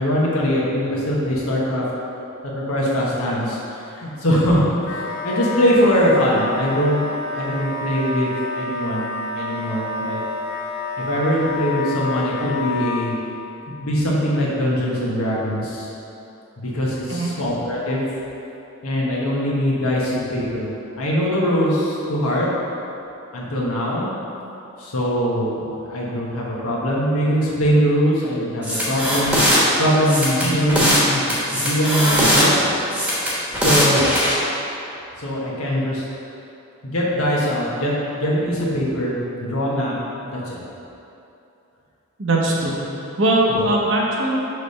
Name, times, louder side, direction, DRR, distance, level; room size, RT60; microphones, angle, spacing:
voice 1, 0.0-1.8 2.4-3.6 3.9-4.7 5.2-7.0 7.3-10.2 11.0-13.1 13.8-15.9 16.6-18.0 18.8-20.7 21.0-22.5 23.3-24.1 24.8-29.4 29.8-32.6 33.5-34.0 35.2-36.0 36.8-39.9 40.2-40.6 43.5-43.6, equal, 85° left, -5 dB, 1.3 m, -22 dB
Wind instrument woodwind instrument, 4.8-13.2, left 3 dB, 45° left, 0.4 m, -28 dB
sound 1, 28.6-29.6 30.0-31.0 31.3-32.5 32.9-34.3, equal, 5° right, 1.2 m, -19 dB
voice 2, 42.2-42.8 43.2-44.4, right 1 dB, 60° right, -3 dB, 1.0 m, -20 dB
6.4 x 3.3 x 5.5 m, 2.8 s
head